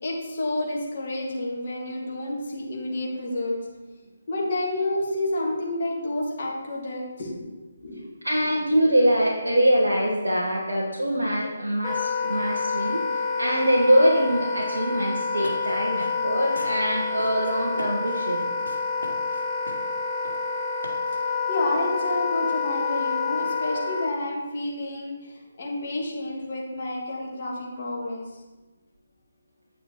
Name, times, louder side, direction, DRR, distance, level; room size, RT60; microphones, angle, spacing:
voice 1, 0.0-3.6 4.3-7.4 7.8-8.0 8.4-8.5 21.5-28.3, left 1 dB, 45° left, -3 dB, 2.8 m, -29 dB
voice 2, 8.2-18.5, equal, 75° right, -3 dB, 1.6 m, -23 dB
Wind instrument woodwind instrument, 11.8-24.1, left 4 dB, 20° left, 0.7 m, -28 dB
sound 1, 15.3-21.4, left 1 dB, 85° left, 2.1 m, -43 dB
9.8 x 6.4 x 4.6 m, 1.2 s
figure-of-eight pair, 145°, 0 cm